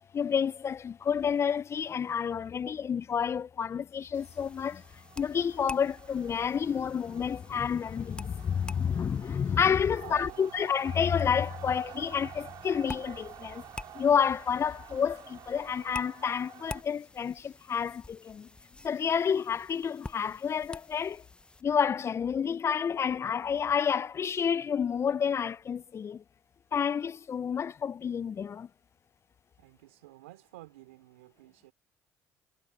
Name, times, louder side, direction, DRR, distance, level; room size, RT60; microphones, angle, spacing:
voice 1, 0.1-4.8 5.2-13.5 14.0-18.4 18.8-21.2 21.6-26.2 26.7-28.7, left 7 dB, 40° left, 0.6 m, -29 dB
sound 1, 4.1-21.6, left 2 dB, 15° left, 0.9 m, -49 dB
sound 2, 4.1-16.8, right 12 dB, 65° right, 5.0 m, -50 dB
voice 2, 10.0-10.5 29.6-31.7, right 19 dB, 90° right, 3.6 m, -50 dB
hypercardioid pair, 60°, 7 cm